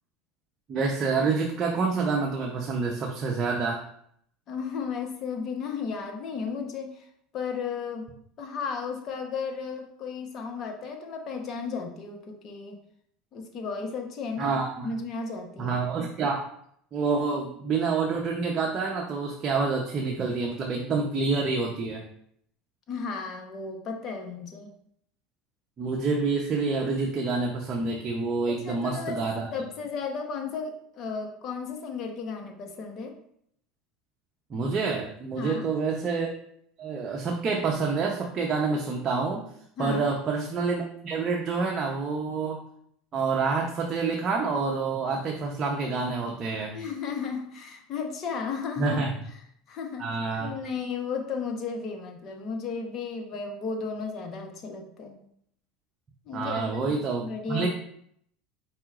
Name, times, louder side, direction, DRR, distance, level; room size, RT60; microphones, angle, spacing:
voice 1, 0.7-3.8 14.4-14.9 15.6-16.4 16.9-22.0 25.8-29.5 34.5-36.3 36.8-39.4 39.8-42.6 43.1-46.8 48.8-49.1 50.0-50.6 56.3-57.2 57.5-57.7, right 4 dB, 35° right, 0 dB, 0.8 m, -27 dB
voice 2, 4.5-7.0 7.3-8.1 8.4-12.8 13.3-15.8 22.9-24.7 28.5-29.2 29.5-33.1 35.3-35.7 39.8-40.1 46.7-49.1 49.7-50.1 50.4-55.2 56.3-56.9 57.2-57.7, left 5 dB, 45° left, 3 dB, 1.1 m, -34 dB
4.8 x 4.2 x 2.5 m, 0.69 s
hypercardioid pair, 95°, 0 cm